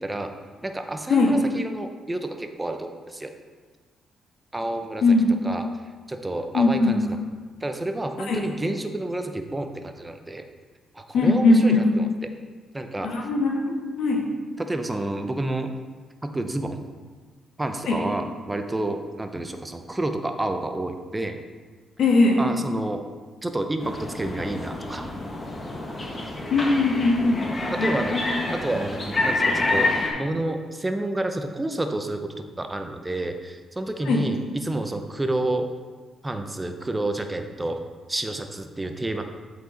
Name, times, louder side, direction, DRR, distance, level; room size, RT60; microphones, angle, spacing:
voice 1, 0.0-0.3 0.6-3.3 4.5-5.0 5.4-5.6 6.1-7.2 7.6-10.4 10.9-12.3 12.7-13.1 14.6-15.7 16.2-16.8 17.6-21.4 22.4-23.0 23.4-25.1 27.2-28.2 28.5-35.7 36.2-37.8 38.1-39.2, right 1 dB, 15° right, 6 dB, 0.6 m, -29 dB
voice 2, 5.0-5.3 6.5-7.0 8.3-8.5 11.1-11.8 13.0-14.3 17.9-18.0 22.0-22.4 26.5-28.4 34.0-34.2, left 2 dB, 75° left, -1 dB, 1.4 m, -20 dB
sound 1, 23.8-30.1, left 2 dB, 25° left, 1.2 m, -28 dB
8.0 x 4.8 x 3.9 m, 1.4 s
cardioid pair, 105°, 0 cm